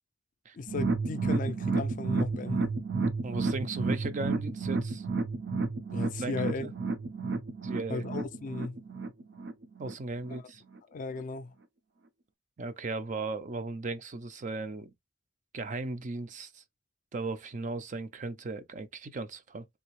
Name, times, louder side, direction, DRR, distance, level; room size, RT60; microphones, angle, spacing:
voice 1, 0.5-2.7 5.9-6.7 7.9-8.8 10.3-10.4 10.9-11.5, left 4 dB, 45° left, 0.4 m, -36 dB
sound 1, 0.7-9.9 10.3-10.4 10.8-10.9, right 4 dB, 65° right, 0.7 m, -31 dB
voice 2, 3.2-5.0 6.2-6.7 7.6-8.0 9.8-10.6 12.6-14.9 15.5-16.6 17.1-19.7, right 3 dB, 45° right, 0.5 m, -37 dB
3.4 x 2.6 x 3.0 m
head